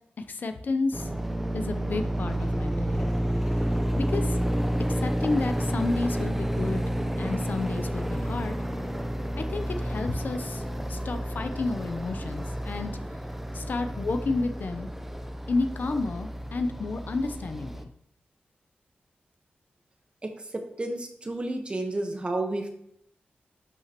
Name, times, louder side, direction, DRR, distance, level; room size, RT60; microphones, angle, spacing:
voice 1, 0.2-1.1 1.5-3.1 4.0-4.4 4.9-6.8 7.2-8.5 9.4-10.6 10.9-12.9 13.5-14.9 15.5-17.9, left 3 dB, 55° left, 8 dB, 0.7 m, -31 dB
sound 1, 0.9-17.8, equal, 5° right, 0.7 m, -30 dB
voice 2, 20.2-22.7, right 2 dB, 30° right, 4 dB, 1.2 m, -31 dB
11.5 x 5.9 x 3.0 m, 0.74 s
wide cardioid pair, 105°, 4 cm